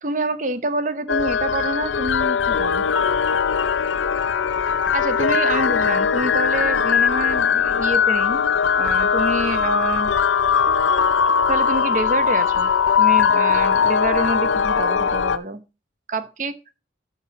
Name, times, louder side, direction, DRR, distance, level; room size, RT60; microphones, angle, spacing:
voice 1, 0.0-2.8 4.9-8.4 8.8-10.1 11.5-12.7 13.0-15.6 16.1-16.6, right 2 dB, 40° right, 12 dB, 0.9 m, -27 dB
sound 1, 1.1-15.4, left 6 dB, 80° left, 0.6 m, -20 dB
13.0 x 6.2 x 4.1 m, 0.30 s
head